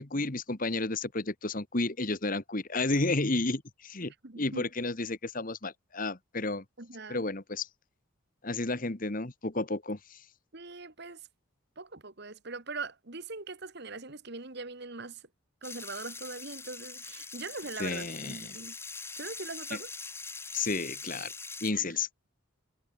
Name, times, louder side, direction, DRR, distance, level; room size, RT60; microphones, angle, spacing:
voice 1, 0.0-6.6 7.1-7.7 8.4-10.2 17.8-18.6 20.5-21.3 21.6-22.1, left 3 dB, 40° left, 1.5 m, -32 dB
voice 2, 4.1-4.7 6.8-7.3 10.5-11.3 11.8-15.2 15.6-18.8 19.2-19.9 21.7-21.9, right 3 dB, 50° right, 1.7 m, -42 dB
sound 1, 15.6-21.7, left 4 dB, 10° left, 4.2 m, -43 dB
head